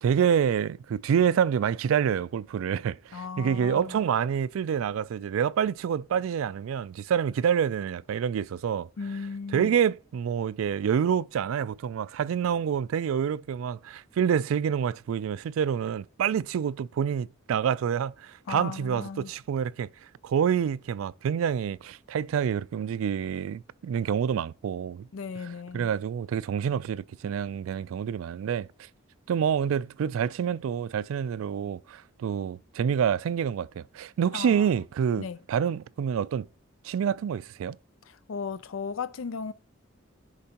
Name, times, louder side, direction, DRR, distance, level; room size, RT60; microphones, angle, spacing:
voice 1, 0.0-8.9 9.5-19.9 20.2-25.1 25.7-28.9 29.3-36.5 36.8-37.8, right 8 dB, 85° right, 0.3 m, -27 dB
voice 2, 3.1-4.0 9.0-9.7 18.5-19.3 25.1-25.9 34.3-34.6 35.2-35.4 38.1-39.5, left 5 dB, 80° left, 0.5 m, -36 dB
10.5 x 5.3 x 2.9 m
head